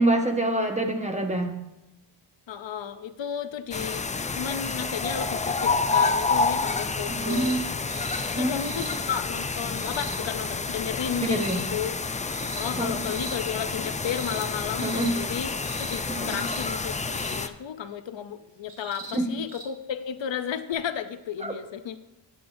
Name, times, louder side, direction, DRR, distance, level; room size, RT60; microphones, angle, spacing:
voice 1, 0.0-1.5 7.1-7.7 8.4-8.8 11.3-11.6 12.8-13.0 14.8-15.1 16.1-16.4 19.1-19.4 21.4-21.5, right 1 dB, 15° right, 4 dB, 1.2 m, -26 dB
voice 2, 2.5-7.6 8.3-11.9 12.6-15.5 15.8-22.0, left 8 dB, 70° left, 10 dB, 0.6 m, -33 dB
sound 1, 3.7-17.5, left 4 dB, 15° left, 0.4 m, -29 dB
sound 2, 7.3-7.6 7.9-8.3 8.6-9.0 9.7-10.2 11.1-11.6 12.3-12.7 13.0-13.4 14.0-14.5 14.8-15.1 15.6-16.0 16.3-16.7 17.1-17.4 18.7-19.2 19.5-19.6 20.7-20.8, right 3 dB, 60° right, 2.1 m, -41 dB
11.0 x 8.5 x 2.6 m, 0.96 s
cardioid pair, 70°, 47 cm